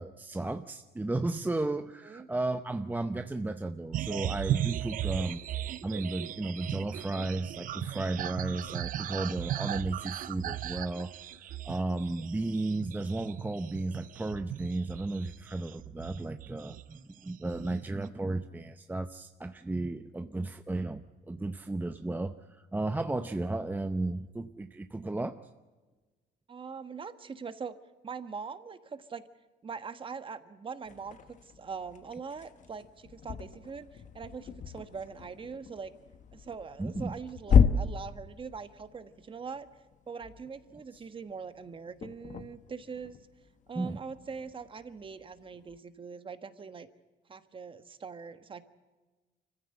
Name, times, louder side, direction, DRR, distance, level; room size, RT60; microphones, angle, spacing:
voice 1, 0.0-5.4 5.8-11.1 11.6-25.3 36.8-37.2 43.7-44.0, right 2 dB, 10° right, 9 dB, 0.7 m, -34 dB
sound 1, 3.9-17.0 17.3-18.0, right 12 dB, 55° right, 0.6 m, -37 dB
voice 2, 26.5-27.7 28.0-29.3 29.6-35.9 36.3-39.7 40.1-43.2 43.7-46.9 47.3-48.6, right 5 dB, 30° right, 11 dB, 1.4 m, -42 dB
sound 2, 30.8-45.8, left 6 dB, 45° left, 1.1 m, -33 dB
25.5 x 15.5 x 8.9 m, 1.3 s
cardioid pair, 110°, 17 cm